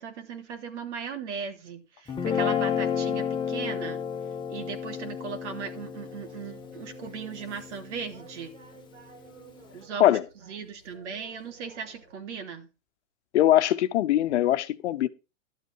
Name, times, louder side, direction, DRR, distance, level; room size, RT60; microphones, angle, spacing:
voice 1, 0.0-4.0 4.5-8.5 9.7-12.7, right 6 dB, 65° right, 3.1 m, -38 dB
Guitar, 2.1-8.4, left 7 dB, 10° left, 1.5 m, -31 dB
sound 1, 6.1-12.2, right 5 dB, 85° right, 7.0 m, -53 dB
voice 2, 13.3-15.1, left 13 dB, 60° left, 1.2 m, -21 dB
12.5 x 8.3 x 4.6 m
hypercardioid pair, 135°, 38 cm